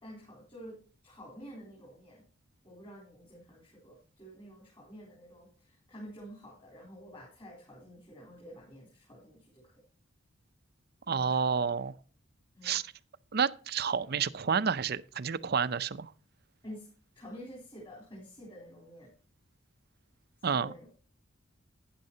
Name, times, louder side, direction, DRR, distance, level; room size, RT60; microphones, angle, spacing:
voice 1, 0.0-2.2 2.6-9.7 11.1-11.7 12.5-12.7 16.6-16.9 17.2-19.1 20.5-20.9, equal, 25° left, 3.7 m, -49 dB
voice 2, 11.1-11.9 12.6-12.8 13.3-16.1 20.4-20.7, right 6 dB, 50° right, 0.5 m, -30 dB
12.0 x 9.6 x 2.8 m
head